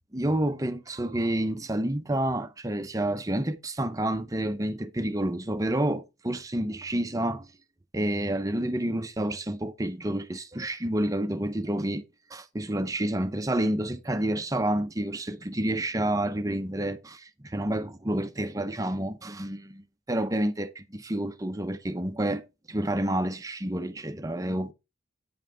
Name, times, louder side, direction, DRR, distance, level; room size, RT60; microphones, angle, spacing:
voice 1, 0.1-7.5 7.9-12.0 12.3-19.8 20.1-24.7, right 1 dB, 20° right, 0.7 m, -29 dB
9.5 x 5.6 x 3.8 m
head